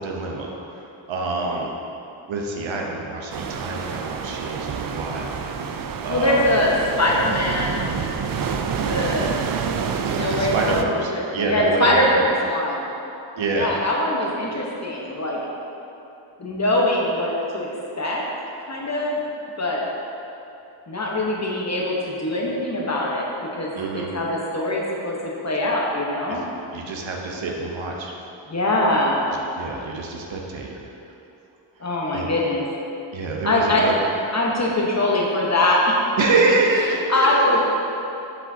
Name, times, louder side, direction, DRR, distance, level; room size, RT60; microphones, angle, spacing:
voice 1, 0.0-1.7 2.3-5.7 6.0-6.6 10.0-12.2 13.4-13.8 15.0-15.2 23.8-24.1 26.3-26.4 26.7-28.1 29.6-30.8 32.1-32.3 33.1-34.0 36.2-37.3, right 3 dB, 65° right, 0 dB, 0.9 m, -26 dB
sound 1, 3.3-10.8, right 6 dB, 45° right, 0.4 m, -28 dB
voice 2, 6.1-7.8 8.8-9.4 10.1-12.8 13.5-15.4 16.4-17.7 18.0-18.2 18.7-19.2 19.6-19.8 20.9-25.1 25.4-26.4 28.5-29.3 31.8-32.6 33.4-33.9 34.3-36.3 36.9-37.6, left 1 dB, 35° left, -3 dB, 1.1 m, -22 dB
6.8 x 4.9 x 2.8 m, 2.9 s
cardioid pair, 60°, 49 cm